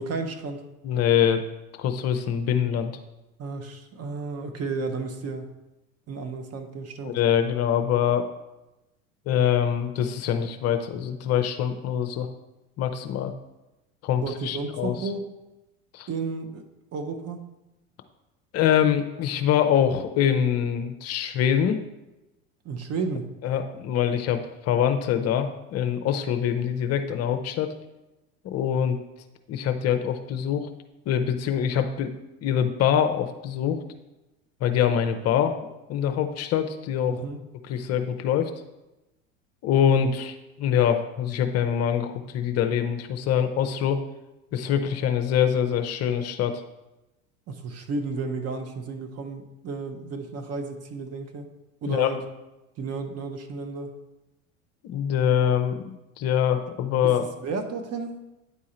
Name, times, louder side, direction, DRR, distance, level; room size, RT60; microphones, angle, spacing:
voice 1, 0.0-0.6 3.4-5.5 6.1-7.1 14.2-15.3 16.1-16.6 16.9-17.4 22.6-23.3 37.1-37.4 47.5-51.5 51.8-52.2 52.8-54.0 57.0-58.2, right 4 dB, 40° right, 6 dB, 0.9 m, -32 dB
voice 2, 0.8-1.4 1.8-2.9 7.0-8.3 9.3-12.3 12.8-13.3 14.0-14.9 15.9-16.1 18.5-21.8 23.4-27.7 28.4-29.0 29.5-30.7 31.1-32.1 32.4-33.8 34.6-37.2 37.7-38.5 39.6-44.0 44.5-46.6 51.9-52.1 54.8-57.2, left 9 dB, 40° left, 7 dB, 0.6 m, -24 dB
9.4 x 3.7 x 4.2 m, 0.98 s
hypercardioid pair, 85°, 40 cm